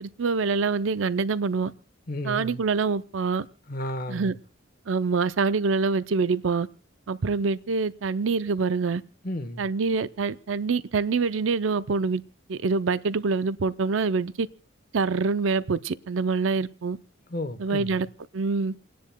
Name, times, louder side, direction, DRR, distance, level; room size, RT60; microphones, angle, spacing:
voice 1, 0.0-1.7 2.2-3.5 4.1-4.3 4.9-6.7 7.1-9.0 9.6-12.2 12.5-14.5 14.9-17.0 17.6-18.1 18.3-18.8, right 4 dB, 80° right, 0.5 m, -25 dB
voice 2, 2.1-2.6 3.7-4.3 9.2-9.6 17.3-18.0, left 1 dB, 45° left, 1.1 m, -33 dB
29.0 x 10.0 x 2.3 m
head